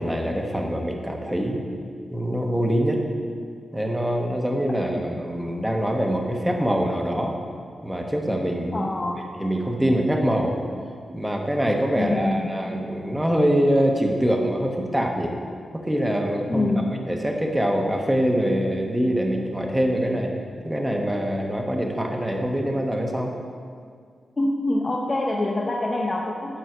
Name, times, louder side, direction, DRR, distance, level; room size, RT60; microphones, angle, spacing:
voice 1, 0.0-1.6 2.1-3.0 3.7-7.4 7.8-8.9 9.4-10.6 11.1-15.4 15.7-20.3 20.6-23.3, equal, 5° right, 1 dB, 1.3 m, -24 dB
voice 2, 8.7-9.3 11.9-12.5 16.5-17.0 24.4-26.6, left 2 dB, 30° left, -1 dB, 0.8 m, -25 dB
11.0 x 4.5 x 7.9 m, 2.1 s
cardioid pair, 90°, 0 cm